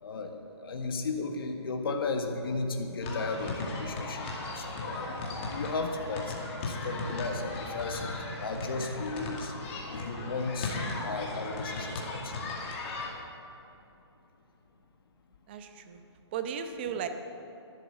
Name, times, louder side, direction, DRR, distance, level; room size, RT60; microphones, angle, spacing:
voice 1, 0.0-6.3 6.7-9.5 9.9-12.6, left 3 dB, 55° left, 3 dB, 1.6 m, -35 dB
sound 1, 3.0-13.1, left 2 dB, 25° left, 2.2 m, -37 dB
voice 2, 15.5-16.0 16.3-17.1, right 8 dB, 25° right, 8 dB, 0.7 m, -36 dB
13.5 x 11.5 x 7.0 m, 2.9 s
hypercardioid pair, 165°, 15 cm